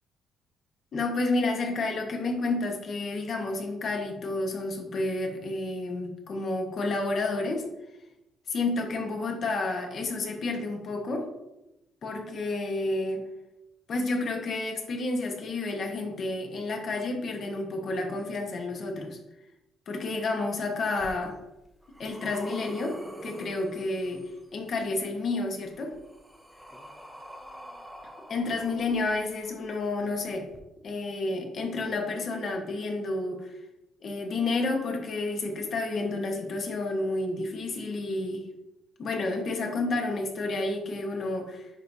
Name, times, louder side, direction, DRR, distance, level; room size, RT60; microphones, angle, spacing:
voice 1, 0.9-7.6 8.5-11.3 12.0-13.3 13.9-19.2 19.9-21.4 22.0-25.9 28.3-30.5 30.8-33.6 34.0-38.4 39.0-41.7, left 2 dB, 50° left, 3 dB, 1.3 m, -30 dB
sound 1, 21.0-21.1 21.6-24.4 25.6-29.5 30.5-30.6, equal, ahead, 0.7 m, -43 dB
10.0 x 4.7 x 2.8 m, 0.94 s
cardioid pair, 135°, 0 cm